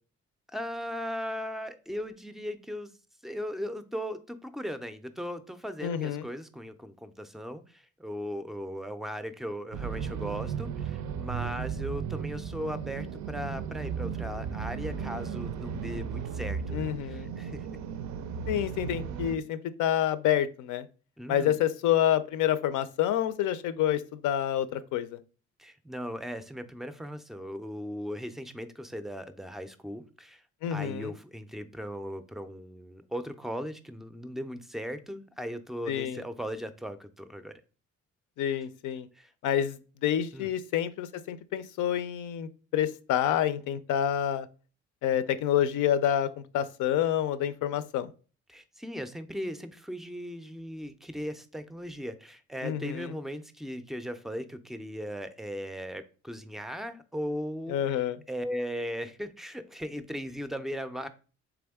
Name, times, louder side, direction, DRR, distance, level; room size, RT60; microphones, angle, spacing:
voice 1, 0.5-2.9 3.2-17.7 18.5-18.7 21.2-21.6 25.6-30.4 30.7-37.6 39.2-39.3 40.3-40.5 48.5-61.1, equal, ahead, 11 dB, 0.4 m, -38 dB
voice 2, 5.8-6.3 16.7-17.3 18.5-20.9 21.3-25.2 30.6-31.1 35.9-36.2 38.4-39.1 39.4-44.5 45.0-48.1 52.6-53.1 57.7-58.2, left 10 dB, 80° left, 13 dB, 0.5 m, -28 dB
sound 1, 9.7-19.4, right 7 dB, 70° right, 0.5 m, -35 dB
3.5 x 3.4 x 3.4 m, 0.36 s
cardioid pair, 90°, 30 cm